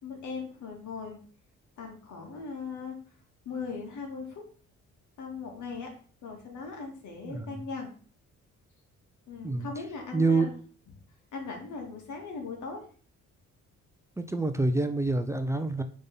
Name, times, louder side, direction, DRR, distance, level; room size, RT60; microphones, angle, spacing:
voice 1, 0.0-1.2 1.8-3.0 3.5-4.4 5.2-5.9 6.2-7.9 9.3-10.5 11.3-12.8, left 4 dB, 70° left, 2 dB, 2.2 m, -39 dB
voice 2, 7.3-7.6 9.4-9.7 10.1-10.5 14.2-15.8, right 3 dB, 10° right, 7 dB, 0.6 m, -27 dB
5.4 x 3.7 x 5.5 m, 0.43 s
cardioid pair, 90°, 30 cm